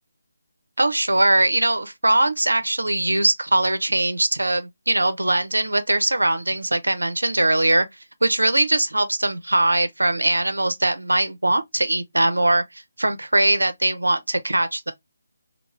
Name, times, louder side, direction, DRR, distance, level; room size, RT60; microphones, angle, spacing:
voice 1, 0.8-7.9 8.2-12.6 13.0-14.9, right 1 dB, 90° right, 0.6 m, -21 dB
2.3 x 2.1 x 3.2 m
figure-of-eight pair, 155°, 0 cm